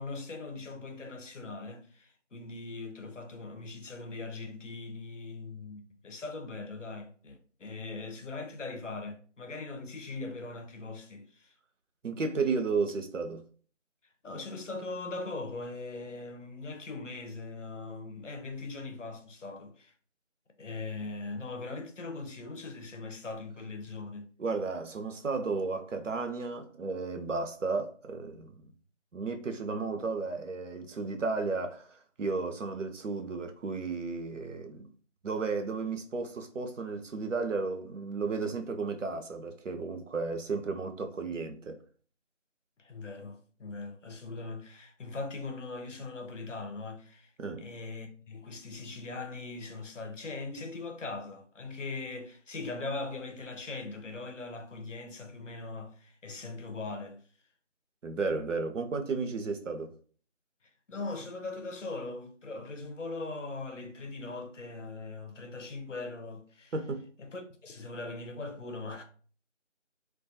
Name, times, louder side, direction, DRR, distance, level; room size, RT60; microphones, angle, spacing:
voice 1, 0.0-11.5 14.2-19.9 20.6-24.3 42.8-47.3 47.6-57.2 60.9-66.7 67.2-69.0, left 3 dB, 80° left, 0.7 m, -40 dB
voice 2, 12.0-13.4 24.4-28.5 29.1-34.9 35.2-41.8 47.4-47.6 58.0-59.9 66.7-67.1, right 4 dB, 80° right, 0.6 m, -33 dB
2.2 x 2.2 x 2.6 m
figure-of-eight pair, 180°, 37 cm